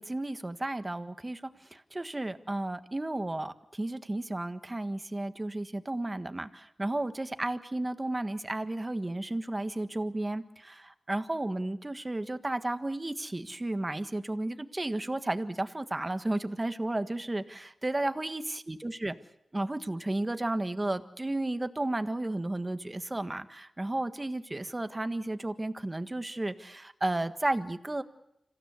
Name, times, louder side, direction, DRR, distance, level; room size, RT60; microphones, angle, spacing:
voice 1, 0.0-1.4 1.7-19.1 19.5-28.0, right 2 dB, 25° right, 9 dB, 1.5 m, -33 dB
26.5 x 15.5 x 8.2 m, 0.85 s
cardioid pair, 55°, 0 cm